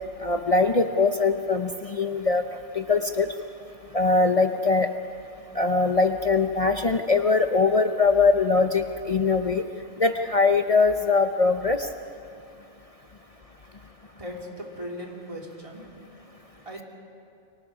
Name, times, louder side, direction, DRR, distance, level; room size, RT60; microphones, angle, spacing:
voice 1, 0.2-2.4 2.7-3.3 3.9-4.9 5.6-9.6 10.0-11.9, left 4 dB, 35° left, 7 dB, 0.6 m, -22 dB
voice 2, 14.2-15.9 16.6-16.8, equal, 25° right, -1 dB, 2.9 m, -38 dB
29.5 x 24.5 x 4.9 m, 2.5 s
omnidirectional pair, 1.2 m